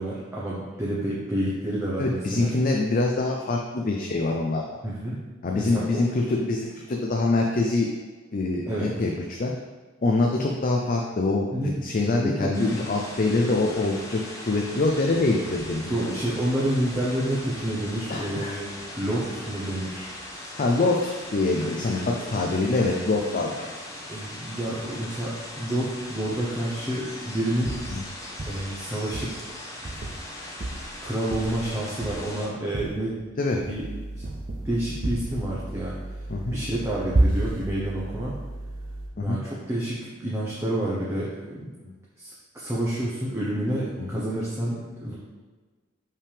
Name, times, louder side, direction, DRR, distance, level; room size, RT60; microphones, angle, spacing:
voice 1, 0.0-2.5 4.8-5.2 5.5-6.0 8.7-9.0 11.5-11.8 12.2-12.7 15.9-18.7 19.0-20.2 21.6-21.7 22.1-22.2 24.1-27.8 28.5-29.5 31.0-33.2 33.7-33.9 34.6-36.0 36.5-38.4 39.2-41.7 42.2-45.1, right 1 dB, 15° right, -7 dB, 0.8 m, -29 dB
voice 2, 2.0-4.6 5.4-7.9 8.3-9.5 10.0-16.2 18.1-18.5 20.6-23.7 27.9-28.0 33.4-33.6 36.3-36.6 39.2-39.4 41.9-42.0 44.0-44.1, left 2 dB, 40° left, 0 dB, 0.5 m, -25 dB
sound 1, 12.5-32.5, left 1 dB, 15° left, 0.9 m, -39 dB
sound 2, 27.7-28.0 28.4-28.7 29.1-29.4 29.8-30.3 30.6-30.9 31.3-31.7 32.0-32.4 32.7-33.0 33.5-33.9 34.2-34.7 35.0-35.4 37.1-37.7, right 1 dB, 40° right, 0.6 m, -28 dB
sound 3, 33.8-39.1, right 1 dB, 60° right, 1.1 m, -37 dB
5.5 x 5.2 x 3.4 m, 1.3 s
head